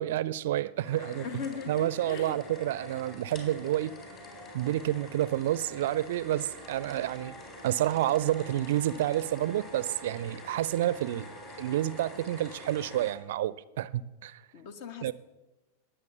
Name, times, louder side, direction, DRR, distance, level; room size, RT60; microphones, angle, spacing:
voice 1, 0.0-3.9 4.5-7.3 7.6-11.3 11.6-14.4 15.0-15.1, right 13 dB, 55° right, 0.5 m, -29 dB
sound 1, 0.8-13.1, left 1 dB, 30° left, 4.2 m, -46 dB
voice 2, 1.0-2.4 14.5-15.1, left 7 dB, 50° left, 1.2 m, -40 dB
20.0 x 8.1 x 7.0 m
figure-of-eight pair, 90°, 0 cm